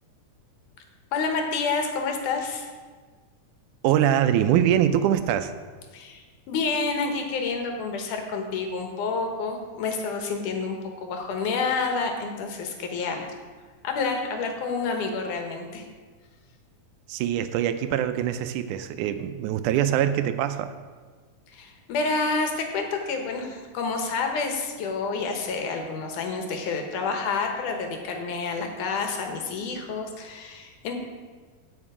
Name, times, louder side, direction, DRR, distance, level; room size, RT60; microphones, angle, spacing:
voice 1, 1.1-2.7 5.9-13.3 13.8-15.9 21.5-30.9, left 4 dB, 85° left, 3 dB, 2.8 m, -29 dB
voice 2, 3.8-5.5 17.1-20.7, right 10 dB, 85° right, 10 dB, 2.1 m, -23 dB
16.0 x 5.4 x 4.9 m, 1.5 s
omnidirectional pair, 3.5 m